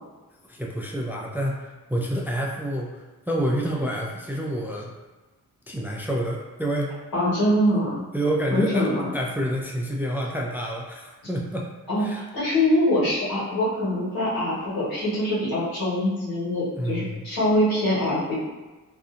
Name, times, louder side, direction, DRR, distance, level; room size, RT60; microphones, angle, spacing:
voice 1, 0.5-4.9 5.7-7.0 8.1-8.9 9.1-11.7 12.0-12.2 16.7-17.2, right 1 dB, 5° right, -2 dB, 0.4 m, -28 dB
voice 2, 7.1-8.0 8.5-9.1 11.9-12.0 12.3-18.3, left 1 dB, 75° left, -10 dB, 1.4 m, -23 dB
2.5 x 2.4 x 2.4 m, 1.2 s
cardioid pair, 40°, 36 cm